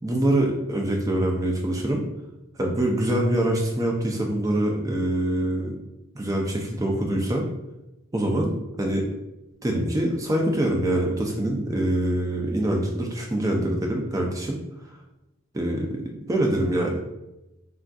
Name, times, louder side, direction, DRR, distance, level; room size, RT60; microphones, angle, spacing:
voice 1, 0.0-2.0 2.6-5.8 6.1-7.5 8.1-9.1 9.6-14.6 15.5-16.0 16.3-17.0, right 1 dB, 15° right, 1 dB, 0.3 m, -24 dB
3.4 x 2.5 x 2.2 m, 0.94 s
head